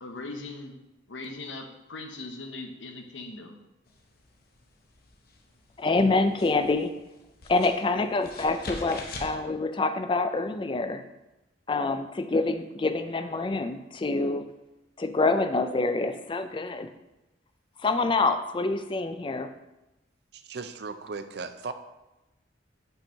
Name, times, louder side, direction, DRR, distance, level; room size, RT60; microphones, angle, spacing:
voice 1, 0.0-0.8 1.1-3.6, left 3 dB, 75° left, 5 dB, 0.8 m, -40 dB
sound 1, 3.9-9.4, left 2 dB, 50° left, 0.8 m, -44 dB
voice 2, 5.8-6.9 7.5-11.0 11.7-14.4 15.0-16.9 17.8-19.5, left 3 dB, 25° left, 9 dB, 0.3 m, -26 dB
voice 3, 20.3-21.7, right 4 dB, 55° right, 9 dB, 0.5 m, -37 dB
5.4 x 4.4 x 5.6 m, 0.99 s
head